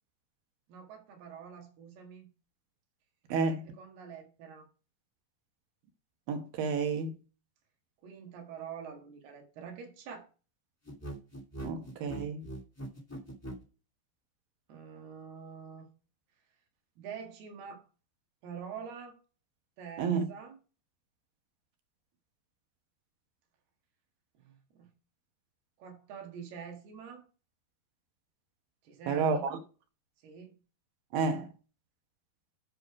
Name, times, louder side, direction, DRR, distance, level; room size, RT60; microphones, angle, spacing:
voice 1, 0.7-2.3 3.7-4.7 8.0-10.3 14.7-15.9 17.0-17.9 18.4-19.2 19.8-20.6 24.4-24.9 25.8-27.2 28.8-29.5 30.2-30.5, right 7 dB, 90° right, 3.7 m, -46 dB
voice 2, 3.3-3.7 6.3-7.1 11.6-12.4 20.0-20.3 29.1-29.6 31.1-31.5, right 5 dB, 70° right, 2.8 m, -30 dB
sound 1, 10.8-13.6, right 1 dB, 10° left, 0.9 m, -41 dB
7.6 x 6.7 x 4.7 m
omnidirectional pair, 4.4 m